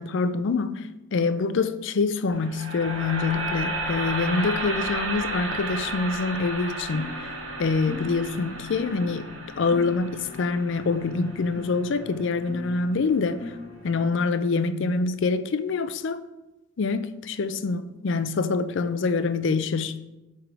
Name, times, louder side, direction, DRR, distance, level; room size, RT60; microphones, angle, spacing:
voice 1, 0.0-7.1 7.6-9.3 9.6-13.5 13.8-16.2 16.8-20.0, left 4 dB, 65° left, 0.4 m, -25 dB
sound 1, 2.3-12.4, right 2 dB, 85° right, 1.1 m, -33 dB
sound 2, 6.9-14.3, left 2 dB, 35° left, 0.9 m, -41 dB
7.5 x 3.5 x 4.6 m
head